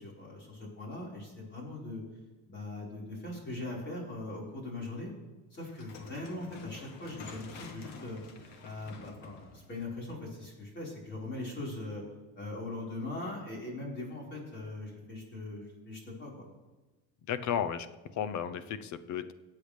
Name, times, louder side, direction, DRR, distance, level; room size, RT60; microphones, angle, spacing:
voice 1, 0.0-2.0 2.5-5.1 5.5-8.2 8.6-12.0 12.4-16.5, left 2 dB, 35° left, -3 dB, 4.9 m, -40 dB
sound 1, 5.6-10.7, left 4 dB, 85° left, 1.9 m, -49 dB
voice 2, 17.3-17.9 18.1-19.3, left 8 dB, 60° left, 12 dB, 0.9 m, -33 dB
22.5 x 8.5 x 3.4 m, 1.2 s
cardioid pair, 140°, 33 cm